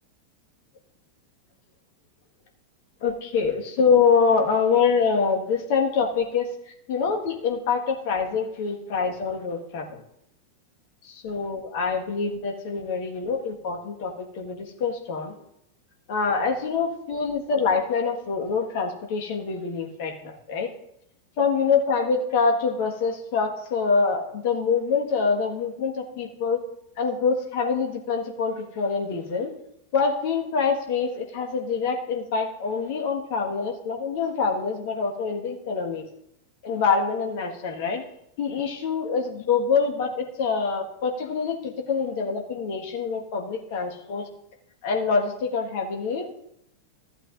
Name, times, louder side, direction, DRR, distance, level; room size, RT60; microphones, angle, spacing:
voice 1, 3.0-6.5 6.9-10.0 11.0-15.3 16.1-20.7 21.4-26.6 27.0-29.5 29.9-36.0 36.6-38.0 38.4-44.3 44.8-46.4, left 5 dB, 50° left, 2 dB, 1.6 m, -25 dB
15.0 x 8.3 x 2.6 m, 0.78 s
figure-of-eight pair, 90°, 0 cm